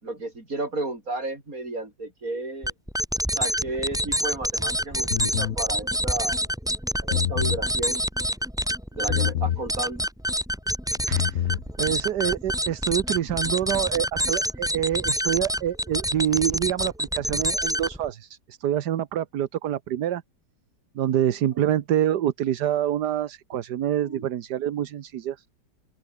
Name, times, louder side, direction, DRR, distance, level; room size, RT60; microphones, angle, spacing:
voice 1, 0.0-2.7 3.3-6.4 7.0-8.0 8.9-10.0 23.5-23.6 24.0-24.2, right 2 dB, 50° right, 6.2 m, -33 dB
sound 1, 2.6-18.1, equal, ahead, 2.1 m, -27 dB
sound 2, 5.1-5.6 7.0-7.6 9.1-9.6 11.0-11.6, left 11 dB, 60° left, 0.9 m, -26 dB
voice 2, 11.1-11.5 11.8-20.2 20.9-25.4, right 11 dB, 70° right, 1.5 m, -26 dB
open air
omnidirectional pair, 1.9 m